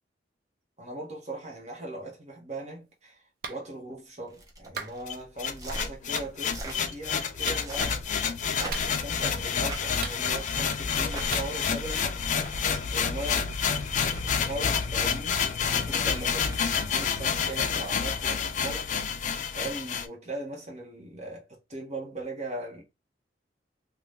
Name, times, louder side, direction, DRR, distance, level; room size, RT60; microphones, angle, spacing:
voice 1, 0.8-8.0 8.6-12.1 12.9-13.6 14.2-18.9 19.2-22.8, right 2 dB, 40° right, 1.1 m, -39 dB
Clapping, 3.4-3.6 4.8-5.0 6.1-6.3 7.4-7.7 8.7-9.2 10.0-10.6 11.3-11.5, right 6 dB, 55° right, 0.4 m, -38 dB
sound 1, 4.3-5.0 5.5-5.9 6.4-6.8 7.5-8.0 8.5-9.1 9.5-9.8 10.9-11.3 12.1-12.8 13.7-14.4 15.5-16.7 18.5-18.7, right 1 dB, 20° right, 0.7 m, -41 dB
sound 2, 5.1-20.1, left 6 dB, 45° left, 0.3 m, -29 dB
2.7 x 2.3 x 3.5 m
head